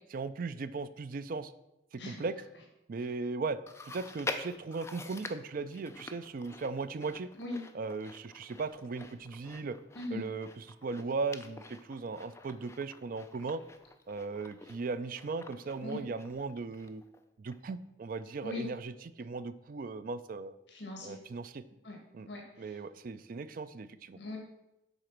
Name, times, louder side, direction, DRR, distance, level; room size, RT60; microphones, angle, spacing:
voice 1, 0.1-1.5 1.9-2.4 2.9-3.6 3.9-7.3 7.7-9.8 10.1-13.6 14.1-17.0 17.4-20.6 21.0-21.6 22.1-22.3 22.6-24.2, right 4 dB, 50° right, 13 dB, 0.4 m, -37 dB
Chewing mastication, 3.7-17.2 17.5-17.6 18.4-18.5, left 3 dB, 15° left, 0.5 m, -47 dB
voice 2, 9.9-10.3 15.8-16.0 18.4-18.7 20.7-21.2 21.8-22.0 22.3-22.8 24.1-24.4, left 2 dB, 75° left, 1 dB, 1.5 m, -40 dB
7.9 x 4.0 x 5.9 m, 0.90 s
head